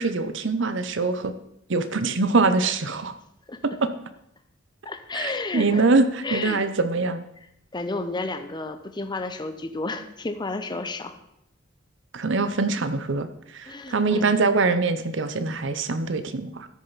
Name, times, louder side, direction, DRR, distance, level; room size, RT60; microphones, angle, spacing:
voice 1, 0.0-1.3 1.7-3.1 3.6-3.9 5.1-7.2 12.1-13.3 13.5-16.7, right 3 dB, 65° right, 11 dB, 0.7 m, -23 dB
voice 2, 4.8-5.8 6.2-6.6 7.7-11.2 13.7-14.4, left 3 dB, 20° left, 8 dB, 0.7 m, -32 dB
13.5 x 6.5 x 4.1 m, 0.80 s
head